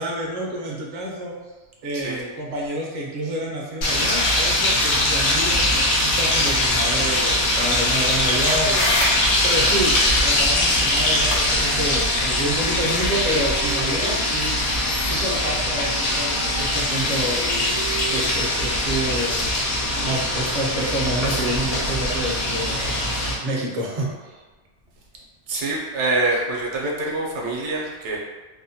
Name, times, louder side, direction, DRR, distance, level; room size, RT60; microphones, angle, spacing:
voice 1, 0.0-1.3 1.8-8.8 9.4-14.6 15.0-17.4 18.1-19.4 20.0-23.0 23.4-24.4, right 1 dB, 50° right, -3 dB, 0.5 m, -28 dB
sound 1, 3.8-23.3, left 1 dB, 65° left, 0.8 m, -22 dB
sound 2, 7.4-12.5, left 1 dB, 85° left, 1.0 m, -30 dB
sound 3, 11.4-18.3, right 1 dB, 30° left, 0.5 m, -38 dB
voice 2, 25.5-28.2, right 2 dB, 80° right, -2 dB, 0.9 m, -25 dB
2.7 x 2.1 x 2.7 m, 1.3 s
omnidirectional pair, 1.2 m